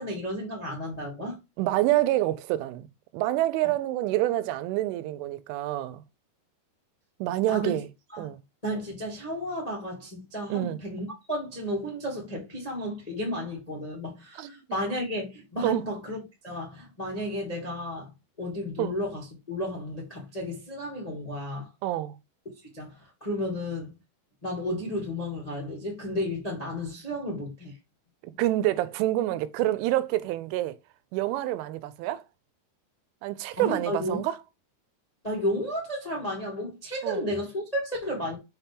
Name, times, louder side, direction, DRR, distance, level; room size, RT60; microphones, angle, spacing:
voice 1, 0.0-1.4 3.6-3.7 7.5-7.8 8.1-8.3 8.6-16.2 16.4-18.1 18.4-21.7 22.7-23.9 24.4-27.7 33.6-34.2 35.2-38.3, equal, 35° left, 0.5 m, -33 dB
voice 2, 1.6-2.9 3.1-6.0 7.2-7.9 8.2-8.4 10.5-10.8 14.4-14.5 15.6-15.8 18.8-19.0 21.8-22.2 28.4-30.8 31.1-32.2 33.2-34.4 37.0-37.2, right 15 dB, 90° right, 3.2 m, -27 dB
6.2 x 5.9 x 3.6 m
omnidirectional pair, 5.4 m